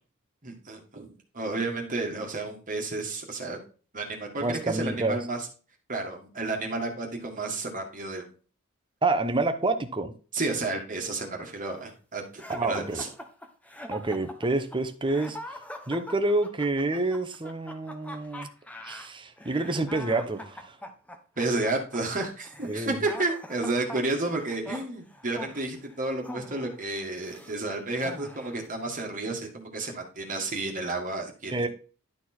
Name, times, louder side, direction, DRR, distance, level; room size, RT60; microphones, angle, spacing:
voice 1, 0.4-1.1 1.3-3.6 3.9-5.5 5.9-8.3 10.3-13.1 21.4-31.7, right 2 dB, 40° right, 1.7 m, -31 dB
voice 2, 4.4-5.2 9.0-10.1 12.5-13.1 13.9-15.6 15.9-18.5 18.8-20.8 22.7-23.0 31.5-31.7, right 2 dB, 25° right, 0.9 m, -28 dB
sound 1, 12.4-27.6 28.0-28.7, equal, 5° left, 0.9 m, -43 dB
11.0 x 4.5 x 4.3 m
head